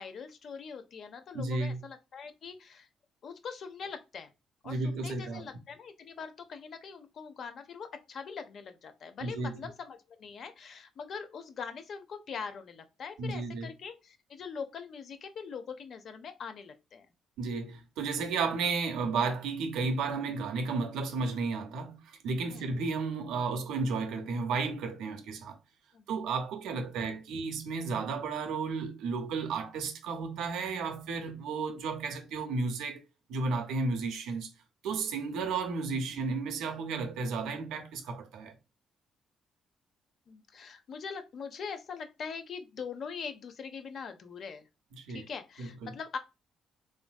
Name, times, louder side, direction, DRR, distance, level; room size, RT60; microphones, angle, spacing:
voice 1, 0.0-2.9 3.2-4.3 4.6-17.1 22.5-22.7 25.9-26.0 26.7-27.1 36.1-36.4 40.3-44.7 45.1-46.2, left 6 dB, 60° left, 0.5 m, -42 dB
voice 2, 1.3-1.8 4.6-5.5 9.2-9.6 13.2-13.7 17.4-25.6 26.1-33.0 33.3-34.5 34.8-38.5 44.9-45.2 45.6-45.9, right 4 dB, 90° right, 0.5 m, -33 dB
3.3 x 2.5 x 2.2 m
cardioid pair, 90°, 0 cm